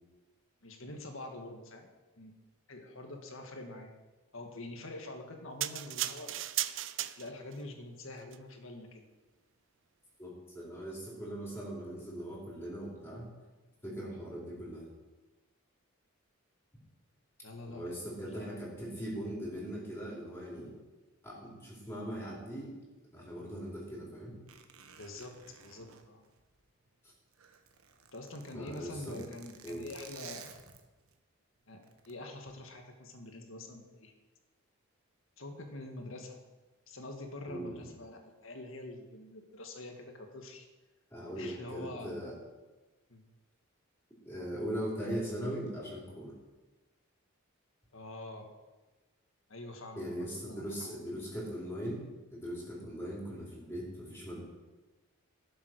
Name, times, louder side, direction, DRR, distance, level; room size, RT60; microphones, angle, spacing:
voice 1, 0.6-1.9 2.2-2.4 2.7-3.9 4.3-6.3 7.2-9.1 17.4-18.6 25.0-26.2 28.1-30.5 31.7-34.1 35.4-36.4 36.9-40.7 41.4-42.1 43.1-43.2 47.9-48.5 49.5-50.7, left 2 dB, 70° left, 4 dB, 1.8 m, -46 dB
sound 1, 5.6-7.6 8.2-8.4, right 13 dB, 60° right, 0.6 m, -35 dB
voice 2, 10.2-13.3 13.8-14.9 17.7-20.7 21.2-22.7 23.1-24.4 28.5-29.3 29.6-29.8 37.5-37.8 41.1-42.3 44.2-46.4 50.0-52.0 52.3-54.4, equal, 10° left, -5 dB, 4.4 m, -40 dB
Zipper (clothing), 24.5-26.9 27.2-31.2 31.8-32.1, right 7 dB, 85° right, 1.3 m, -53 dB
16.5 x 7.4 x 6.2 m, 1.2 s
head